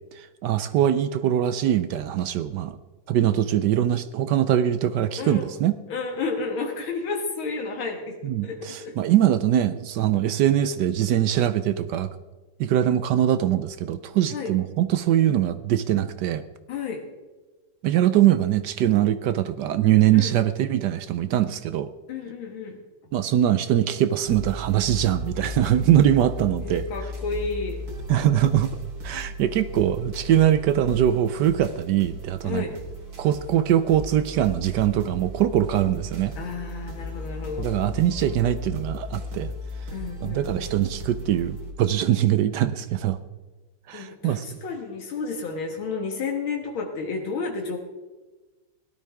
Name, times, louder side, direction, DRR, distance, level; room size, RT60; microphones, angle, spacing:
voice 1, 0.1-2.8 3.1-5.8 8.2-12.1 12.6-16.4 17.8-21.9 23.1-26.8 28.1-28.7 29.0-32.7 33.2-36.3 37.6-39.5 40.2-43.2 43.9-44.6, right 11 dB, 70° right, 12 dB, 1.0 m, -22 dB
voice 2, 5.2-5.5 5.9-8.2 8.4-9.0 14.3-14.5 16.7-17.0 20.1-20.3 22.1-22.8 26.6-27.8 32.4-32.7 36.4-37.7 39.9-40.7 43.9-47.8, left 4 dB, 85° left, 2 dB, 2.3 m, -31 dB
sound 1, 24.3-41.7, left 1 dB, 50° right, 2.5 m, -36 dB
17.5 x 12.0 x 3.5 m, 1.2 s
omnidirectional pair, 2.2 m